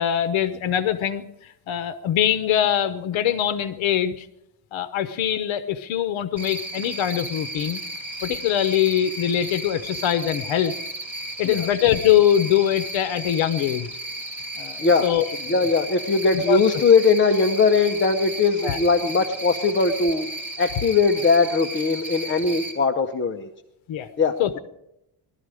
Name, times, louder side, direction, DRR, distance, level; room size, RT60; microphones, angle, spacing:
voice 1, 0.0-4.3 4.7-7.8 8.2-10.7 11.4-13.9 14.6-15.2 16.3-16.6 18.6-18.8 23.9-24.1 24.4-24.6, left 10 dB, 75° left, 12 dB, 0.9 m, -23 dB
Cricket, 6.4-22.7, right 1 dB, 5° right, 2.7 m, -34 dB
voice 2, 15.5-20.3 20.6-23.5 24.2-24.6, left 4 dB, 25° left, 4 dB, 0.7 m, -20 dB
20.0 x 13.0 x 4.9 m, 0.85 s
cardioid pair, 150°, 48 cm